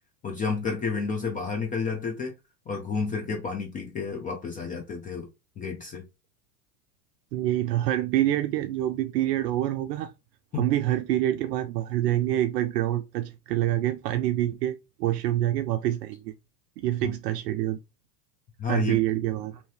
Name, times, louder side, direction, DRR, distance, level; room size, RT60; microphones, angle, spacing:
voice 1, 0.2-2.3 2.7-5.3 5.6-6.0 10.5-10.6 17.0-17.2 18.6-19.0, left 5 dB, 20° left, 0.4 m, -31 dB
voice 2, 7.3-10.1 10.6-16.3 16.8-17.8 18.7-19.6, right 13 dB, 70° right, 0.5 m, -26 dB
2.8 x 2.6 x 3.2 m
hypercardioid pair, 100°, 50 cm